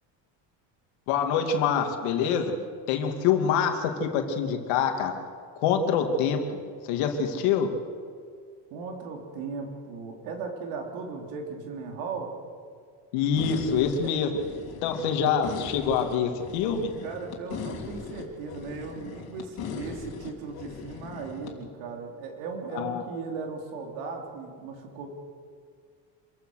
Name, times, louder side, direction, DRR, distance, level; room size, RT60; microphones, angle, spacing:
voice 1, 1.1-2.5 2.9-5.2 5.6-6.6 6.9-7.7 13.1-14.3 14.8-16.9 22.7-23.0, left 7 dB, 80° left, 4 dB, 2.6 m, -25 dB
voice 2, 8.7-12.3 17.0-25.1, right 4 dB, 85° right, 2 dB, 3.7 m, -37 dB
sound 1, 13.4-21.5, left 6 dB, 50° left, 3.5 m, -39 dB
26.5 x 15.5 x 6.5 m, 2.1 s
cardioid pair, 130°, 47 cm